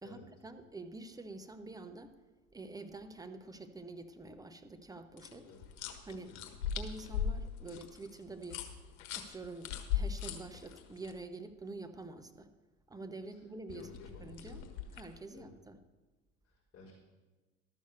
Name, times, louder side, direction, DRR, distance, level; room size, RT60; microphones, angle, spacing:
voice 1, 0.0-2.2 2.5-5.5 6.0-6.3 6.8-8.6 9.1-12.5 12.9-13.9 14.2-14.6 14.9-15.8, right 2 dB, 10° right, 8 dB, 0.9 m, -47 dB
sound 1, 5.2-11.1 13.7-15.2, left 8 dB, 65° left, 1.4 m, -39 dB
voice 2, 13.7-14.6 15.3-15.5 16.4-16.9, left 3 dB, 30° left, -8 dB, 4.6 m, -54 dB
12.5 x 6.4 x 6.8 m, 1.2 s
hypercardioid pair, 80°, 41 cm